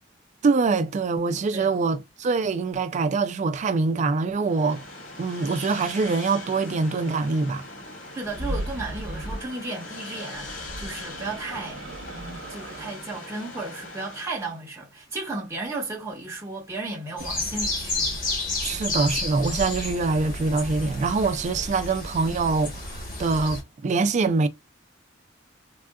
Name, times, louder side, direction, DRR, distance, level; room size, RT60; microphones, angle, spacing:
voice 1, 0.4-4.8 5.2-7.6 18.6-24.5, right 4 dB, 40° right, 0.3 m, -24 dB
sound 1, 4.4-14.5, left 2 dB, 75° left, 1.9 m, -41 dB
voice 2, 8.1-11.8 12.1-18.1 18.7-18.8, right 2 dB, 15° right, 0.8 m, -34 dB
sound 2, 8.2-9.5 10.3-13.0, right 1 dB, 80° right, 0.7 m, -36 dB
sound 3, 17.2-23.6, left 2 dB, 45° left, 1.2 m, -31 dB
3.5 x 2.3 x 2.2 m
head